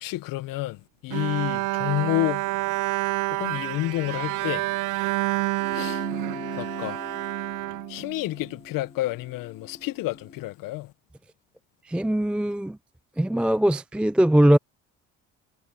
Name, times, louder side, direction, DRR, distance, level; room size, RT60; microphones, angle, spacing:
voice 1, 0.0-0.8 1.0-2.5 3.4-4.6 5.7-6.0 6.5-7.0 7.9-10.9, left 17 dB, 75° left, 1.2 m, -29 dB
Bowed string instrument, 1.1-8.5, right 21 dB, 65° right, 0.5 m, -28 dB
sound 1, 5.6-10.4, left 3 dB, 20° left, 2.1 m, -42 dB
voice 2, 11.9-12.8 13.2-14.6, right 1 dB, 5° right, 0.4 m, -20 dB
supercardioid pair, 70°, 33 cm